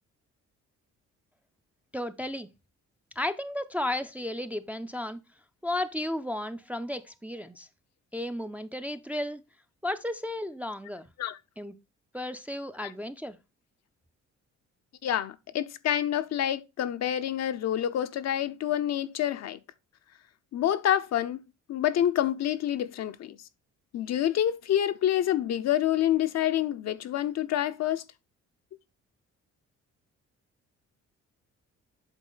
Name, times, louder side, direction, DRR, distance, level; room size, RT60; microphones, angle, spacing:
voice 1, 1.9-2.5 3.2-5.2 5.6-7.7 8.1-9.4 9.8-11.1 11.6-11.7 12.1-13.4, left 1 dB, 5° right, 0.4 m, -33 dB
voice 2, 15.0-19.6 20.5-21.4 21.7-23.4 23.9-28.0, left 11 dB, 60° left, 0.6 m, -27 dB
8.2 x 3.7 x 3.8 m
cardioid pair, 90°, 30 cm